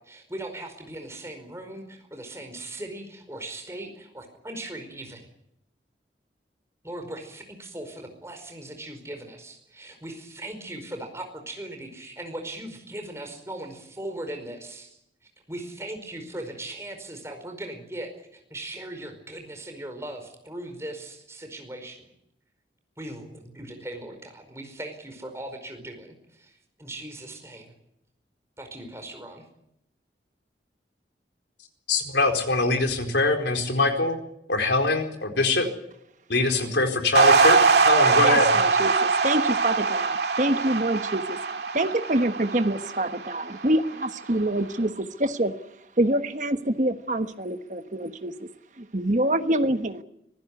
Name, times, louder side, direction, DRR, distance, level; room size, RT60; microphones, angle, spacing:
voice 1, 0.0-5.3 6.8-15.0 15.5-22.1 23.0-27.7 28.6-29.4, right 1 dB, 15° right, 5 dB, 4.9 m, -39 dB
voice 2, 31.9-34.2 34.5-35.7 36.3-38.5, left 3 dB, 90° left, 4 dB, 4.3 m, -23 dB
sound 1, 37.2-43.6, right 4 dB, 70° right, 2.1 m, -22 dB
voice 3, 38.2-41.4 41.7-45.5 46.0-48.5 48.8-50.0, right 1 dB, 45° right, 9 dB, 1.3 m, -26 dB
25.0 x 15.5 x 9.7 m, 0.79 s
head